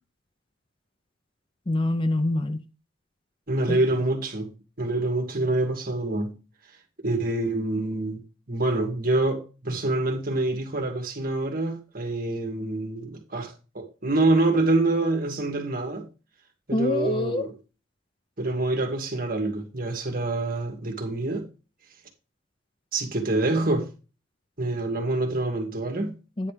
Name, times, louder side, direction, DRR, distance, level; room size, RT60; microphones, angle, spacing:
voice 1, 1.7-2.6 3.7-3.8 16.7-17.5 26.4-26.5, left 2 dB, 25° left, 0.6 m, -25 dB
voice 2, 3.5-6.4 7.0-8.2 8.5-16.1 16.7-17.5 18.4-21.5 22.9-23.9 24.6-26.2, right 2 dB, 45° right, 2.1 m, -26 dB
9.8 x 4.3 x 5.1 m
head